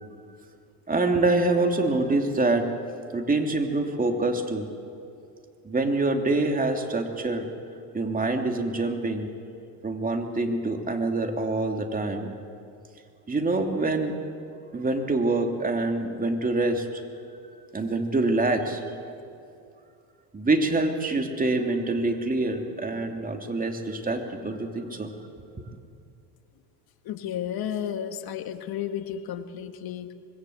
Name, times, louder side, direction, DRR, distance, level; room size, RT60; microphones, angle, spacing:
voice 1, 0.9-2.7 3.1-4.7 5.6-7.5 7.9-9.3 9.8-12.3 13.3-14.2 14.7-17.0 17.7-18.8 20.3-25.1, right 2 dB, 15° right, 4 dB, 3.0 m, -25 dB
voice 2, 27.0-30.1, left 9 dB, 45° left, 8 dB, 2.0 m, -32 dB
25.5 x 21.0 x 8.1 m, 2.5 s
supercardioid pair, 100°, 49 cm